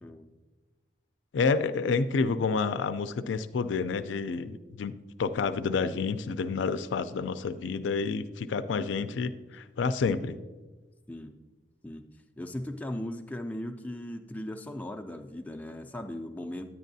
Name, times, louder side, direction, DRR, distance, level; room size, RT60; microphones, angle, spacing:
voice 1, 1.3-4.9 5.2-10.4, left 4 dB, 85° left, 12 dB, 0.4 m, -29 dB
voice 2, 12.4-16.7, left 1 dB, 10° left, 4 dB, 0.3 m, -38 dB
9.6 x 9.1 x 2.7 m, 1.3 s
head